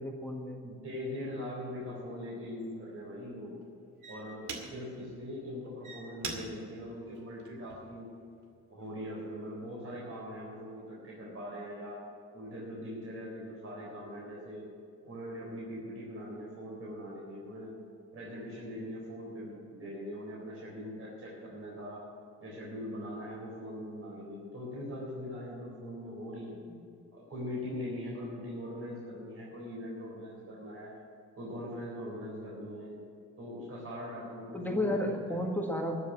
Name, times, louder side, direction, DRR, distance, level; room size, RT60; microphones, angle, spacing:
voice 1, 0.0-0.6 26.7-26.8 34.5-36.0, left 1 dB, 5° left, 0 dB, 1.7 m, -32 dB
voice 2, 0.6-3.6 4.1-8.1 8.7-12.0 12.3-14.7 15.0-17.8 18.1-22.0 22.4-26.6 27.1-30.9 31.4-33.0 33.4-35.4, equal, 50° right, -5 dB, 4.1 m, -41 dB
sound 1, 1.8-2.0 2.6-2.9 3.6-3.7 4.0-5.0 5.6-8.0 8.5-8.9, right 4 dB, 75° right, 2.2 m, -43 dB
13.5 x 6.9 x 9.9 m, 2.5 s
cardioid pair, 90°, 30 cm